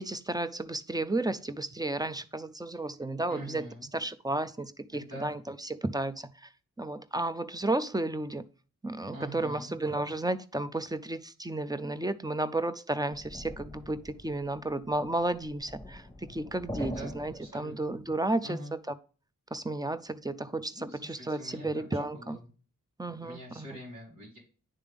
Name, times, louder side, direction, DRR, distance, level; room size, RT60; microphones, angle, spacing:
voice 1, 0.0-3.7 3.9-6.5 6.8-8.5 8.8-18.8 19.5-22.4 23.0-23.7, right 2 dB, 10° right, 0.4 m, -33 dB
voice 2, 3.3-3.9 4.9-5.4 9.1-9.7 16.8-18.0 18.4-18.7 20.8-22.4 23.1-24.4, right 1 dB, 85° right, 2.9 m, -44 dB
sound 1, 13.1-18.1, equal, 5° left, 1.2 m, -44 dB
9.6 x 3.4 x 3.3 m
cardioid pair, 50°, 33 cm